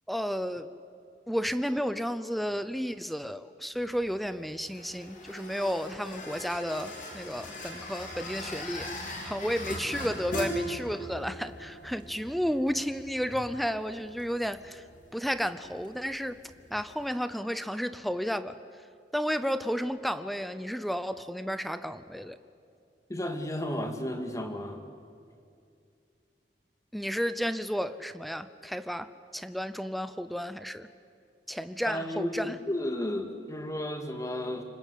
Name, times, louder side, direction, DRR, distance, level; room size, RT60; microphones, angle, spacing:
voice 1, 0.1-0.7 1.3-8.9 9.2-14.8 15.1-16.4 16.7-18.6 19.1-22.4 26.9-30.9 31.5-32.6, equal, ahead, 12 dB, 0.7 m, -32 dB
sound 1, 3.7-17.1, equal, 50° left, 4.5 m, -41 dB
voice 2, 23.1-24.9 31.9-34.6, left 1 dB, 20° left, 6 dB, 2.2 m, -33 dB
28.0 x 25.0 x 8.5 m, 2.4 s
head